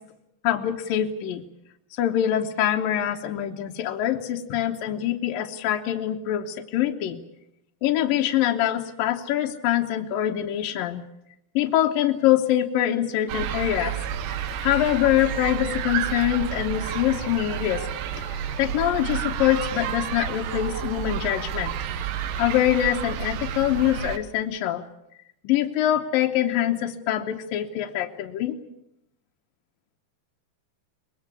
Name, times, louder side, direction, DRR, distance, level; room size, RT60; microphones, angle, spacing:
voice 1, 0.4-1.4 1.9-7.2 7.8-11.0 11.6-14.0 14.6-17.9 18.6-21.7 22.4-24.8 25.4-28.6, left 12 dB, 70° left, 3 dB, 2.7 m, -24 dB
sound 1, 13.3-24.2, right 9 dB, 70° right, 2.8 m, -30 dB
24.0 x 21.0 x 8.4 m, 0.81 s
omnidirectional pair, 4.3 m